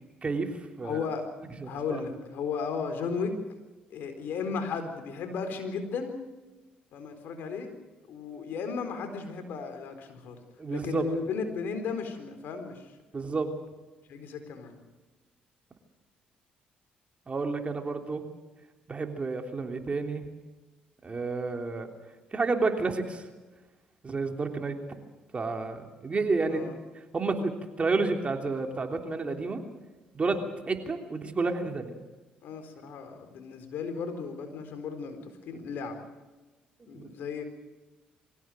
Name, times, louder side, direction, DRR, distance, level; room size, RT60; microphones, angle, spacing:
voice 1, 0.8-1.2 1.7-3.4 3.9-6.2 6.9-7.7 8.1-10.4 10.7-12.9 14.1-14.8 26.5-26.8 30.2-30.4 32.4-36.1 36.9-37.4, left 5 dB, 70° left, 7 dB, 4.1 m, -35 dB
voice 2, 1.6-2.0 10.6-11.1 13.1-13.5 17.3-18.2 18.9-20.3 21.0-21.9 22.3-23.2 24.0-24.7 25.3-26.7 27.1-27.5 27.8-29.6 30.1-30.4 30.7-31.9 36.8-37.1, right 3 dB, 35° right, 4 dB, 3.3 m, -30 dB
23.5 x 16.5 x 7.8 m, 1.2 s
supercardioid pair, 60°, 4 cm